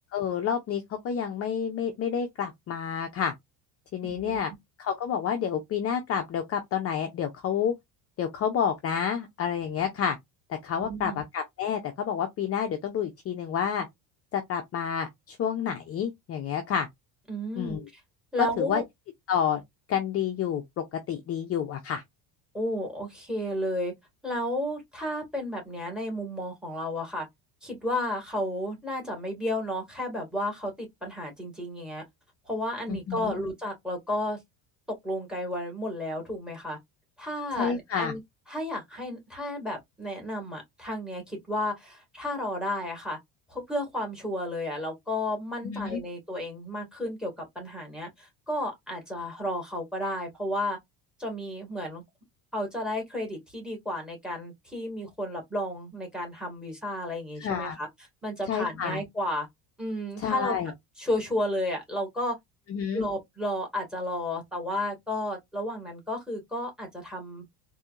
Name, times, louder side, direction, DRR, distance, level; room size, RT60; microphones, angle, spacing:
voice 1, 0.1-3.3 3.9-4.5 4.8-7.7 8.2-10.2 10.6-13.9 14.3-16.9 17.6-17.8 18.4-18.8 19.3-19.6 19.9-22.0 32.9-33.4 37.5-38.2 45.6-46.0 57.4-57.8 58.5-59.0 60.2-60.7 62.7-63.0, left 8 dB, 35° left, 0.6 m, -29 dB
voice 2, 4.0-4.4 10.8-11.2 17.3-18.0 18.3-18.8 22.5-23.9 24.2-27.3 27.6-32.0 32.5-34.4 35.0-36.8 37.2-38.2 38.5-43.2 43.5-50.8 51.2-52.0 52.5-57.9 58.2-59.5 59.8-60.6 61.0-62.3 62.9-67.4, left 1 dB, ahead, 2.0 m, -32 dB
4.1 x 2.7 x 2.4 m
cardioid pair, 130°, 43 cm